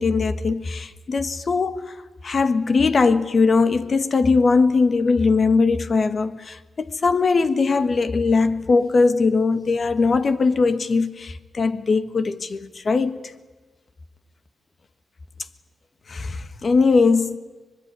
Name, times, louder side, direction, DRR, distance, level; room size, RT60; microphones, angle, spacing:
voice 1, 0.0-1.9 2.2-13.1 16.1-17.4, left 4 dB, 50° left, 1.5 m, -20 dB
24.5 x 21.0 x 9.8 m
cardioid pair, 80°, 0 cm